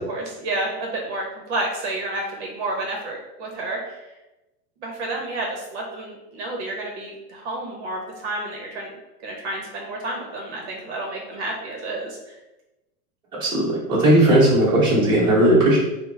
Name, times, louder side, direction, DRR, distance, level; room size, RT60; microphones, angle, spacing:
voice 1, 0.1-4.0 4.8-8.9 9.2-12.4, right 2 dB, 50° right, 0 dB, 0.7 m, -30 dB
voice 2, 13.4-15.8, right 1 dB, 10° right, -9 dB, 0.8 m, -17 dB
3.4 x 2.0 x 3.2 m, 0.98 s
supercardioid pair, 170°, 42 cm